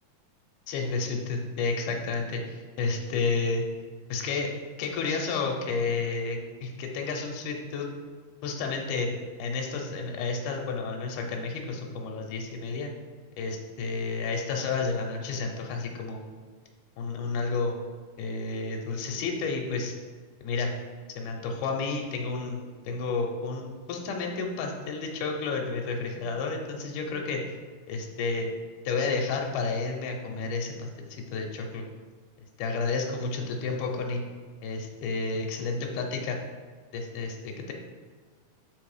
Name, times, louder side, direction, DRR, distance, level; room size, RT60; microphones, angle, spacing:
voice 1, 0.7-3.6 4.1-4.5 4.8-7.9 8.4-9.1 9.4-12.9 13.4-16.4 17.0-17.8 18.2-19.9 20.4-20.7 21.2-27.4 27.9-28.5 28.8-31.9 32.6-34.2 34.6-36.4 36.9-37.7, left 4 dB, 75° left, 1 dB, 2.3 m, -31 dB
7.2 x 3.4 x 4.9 m, 1.5 s
omnidirectional pair, 3.9 m